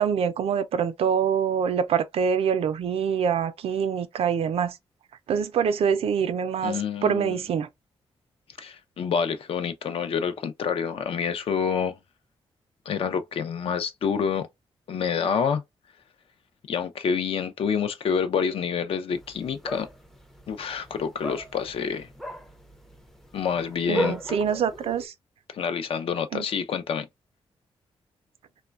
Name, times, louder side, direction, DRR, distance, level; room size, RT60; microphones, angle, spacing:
voice 1, 0.0-4.8 5.3-7.7 23.9-25.1 26.3-26.4, right 7 dB, 70° right, 0.4 m, -25 dB
voice 2, 6.6-7.4 8.6-12.0 12.9-14.5 14.9-15.6 16.7-19.9 20.5-22.1 23.3-24.2 25.5-27.1, left 7 dB, 65° left, 0.5 m, -27 dB
sound 1, 19.1-25.1, equal, 5° left, 0.4 m, -36 dB
3.0 x 2.2 x 2.3 m
wide cardioid pair, 120°, 10 cm